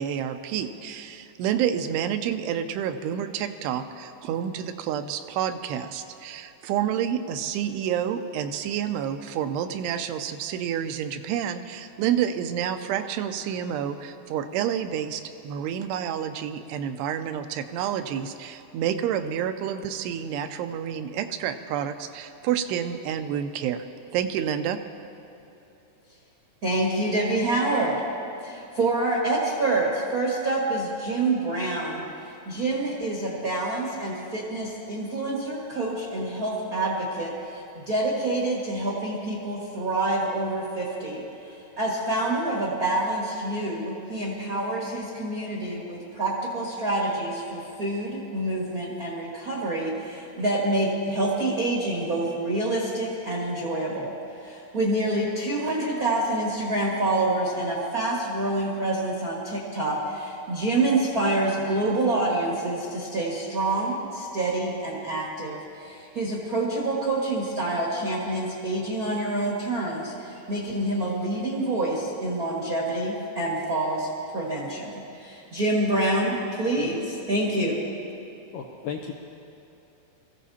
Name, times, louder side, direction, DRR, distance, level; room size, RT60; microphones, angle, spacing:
voice 1, 0.0-23.9 24.1-24.8, right 9 dB, 85° right, 8 dB, 2.7 m, -29 dB
voice 2, 26.6-28.0 28.4-32.0 32.4-54.1 54.4-74.1 74.3-77.8, right 2 dB, 50° right, -5 dB, 1.0 m, -27 dB
voice 3, 78.5-79.1, left 7 dB, 75° left, -1 dB, 2.0 m, -34 dB
24.0 x 15.0 x 2.8 m, 3.0 s
omnidirectional pair, 4.8 m